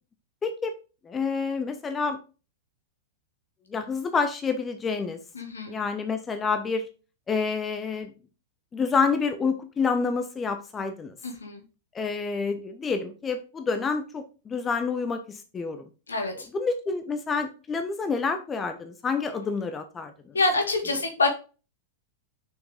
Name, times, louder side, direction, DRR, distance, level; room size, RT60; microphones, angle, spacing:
voice 1, 0.4-0.7 1.0-2.2 3.7-5.2 5.7-6.9 7.3-8.1 8.7-11.2 11.9-15.8 16.3-20.4, left 5 dB, 20° left, 8 dB, 1.0 m, -28 dB
voice 2, 5.3-5.8 11.2-11.6 16.1-16.5 20.3-21.3, left 3 dB, 75° left, 4 dB, 2.2 m, -26 dB
6.3 x 6.3 x 3.6 m, 0.32 s
figure-of-eight pair, 95°, 0 cm